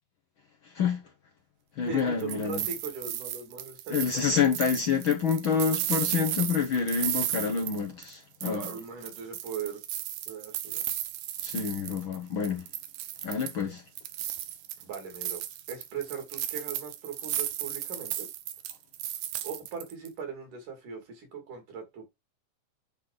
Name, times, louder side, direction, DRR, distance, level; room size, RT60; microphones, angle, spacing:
voice 1, 0.6-1.0 1.8-2.6 3.9-8.7 11.4-12.6 13.2-13.8, left 6 dB, 70° left, 1.1 m, -28 dB
voice 2, 1.9-4.4 8.4-9.8 10.3-10.8 13.4-13.7 14.8-15.4 15.7-18.3 19.4-22.0, right 6 dB, 65° right, 4.1 m, -39 dB
sound 1, 2.0-8.1 8.4-12.2 12.4-13.6 14.0-20.1, right 12 dB, 90° right, 2.7 m, -34 dB
9.5 x 4.0 x 5.0 m
omnidirectional pair, 4.0 m